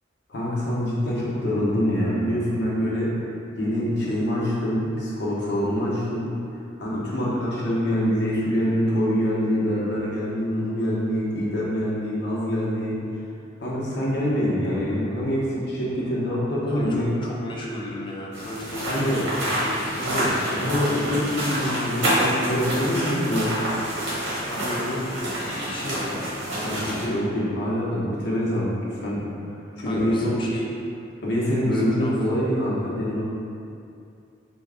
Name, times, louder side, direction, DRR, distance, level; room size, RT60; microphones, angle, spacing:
voice 1, 0.3-3.1 3.6-6.3 6.8-13.0 13.6-17.0 18.9-19.2 20.0-23.5 26.6-29.3 29.8-30.4 31.2-33.2, equal, 60° left, -7 dB, 0.8 m, -25 dB
voice 2, 16.7-20.0 24.4-26.9 29.8-30.7 31.7-32.1, equal, 25° left, -3 dB, 0.4 m, -34 dB
sound 1, 18.3-27.0, equal, 70° right, 1.0 m, -27 dB
3.2 x 2.2 x 3.6 m, 2.5 s
head